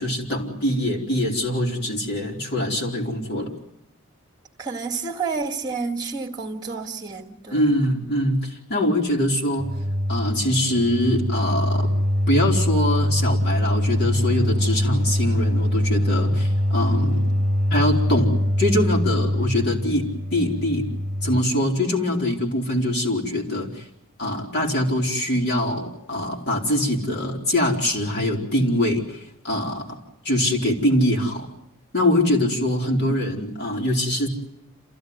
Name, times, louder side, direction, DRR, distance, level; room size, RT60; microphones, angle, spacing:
voice 1, 0.0-3.5 7.5-9.8 10.1-11.9 12.3-17.3 17.7-20.9 21.2-23.9 24.2-30.0 30.2-31.5 31.9-34.3, left 1 dB, 50° left, 4.4 m, -23 dB
voice 2, 4.6-7.8, right 4 dB, 20° right, 2.3 m, -30 dB
sound 1, 9.6-21.4, equal, 35° right, 1.4 m, -23 dB
27.5 x 15.5 x 9.6 m
head